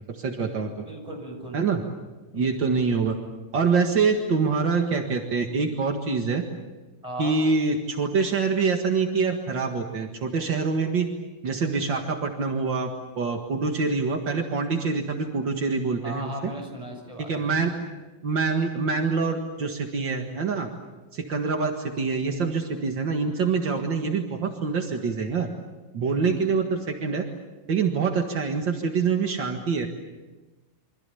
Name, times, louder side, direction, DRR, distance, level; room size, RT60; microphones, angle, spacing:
voice 1, 0.1-0.7 1.5-1.8 2.3-3.1 3.5-6.4 7.2-11.1 11.4-12.9 13.2-16.5 17.3-17.7 18.2-20.7 21.1-25.5 25.9-27.2 27.7-29.9, right 4 dB, 70° right, 3 dB, 2.5 m, -25 dB
voice 2, 0.8-1.7 2.3-2.8 7.0-7.4 16.0-17.6 26.0-26.3, equal, 15° right, 2 dB, 7.4 m, -37 dB
28.0 x 25.0 x 7.0 m, 1.2 s
omnidirectional pair, 2.1 m